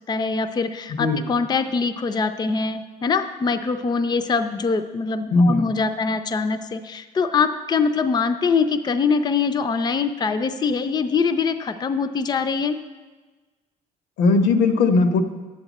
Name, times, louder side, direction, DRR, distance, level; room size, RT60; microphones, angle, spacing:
voice 1, 0.1-12.8, left 5 dB, 25° left, 9 dB, 0.5 m, -23 dB
voice 2, 0.9-1.2 5.3-5.7 14.2-15.2, left 3 dB, 85° left, 7 dB, 1.0 m, -18 dB
11.0 x 7.9 x 4.1 m, 1.3 s
cardioid pair, 110°, 17 cm